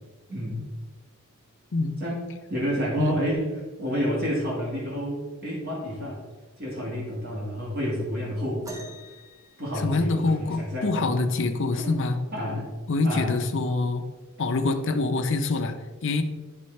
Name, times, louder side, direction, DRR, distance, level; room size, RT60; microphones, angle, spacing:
voice 1, 0.3-0.6 2.0-3.5 3.8-6.2 6.6-8.9 9.6-11.2 11.7-12.0 12.3-12.7 13.0-13.4, equal, 45° right, -5 dB, 1.6 m, -29 dB
sound 1, 8.6-10.5 12.2-12.3 13.1-13.3 14.2-14.3, right 1 dB, 15° right, 1.1 m, -45 dB
voice 2, 9.8-12.2 12.9-14.0 14.4-16.2, left 3 dB, 60° left, 7 dB, 0.6 m, -25 dB
11.0 x 3.7 x 3.2 m, 1.3 s
head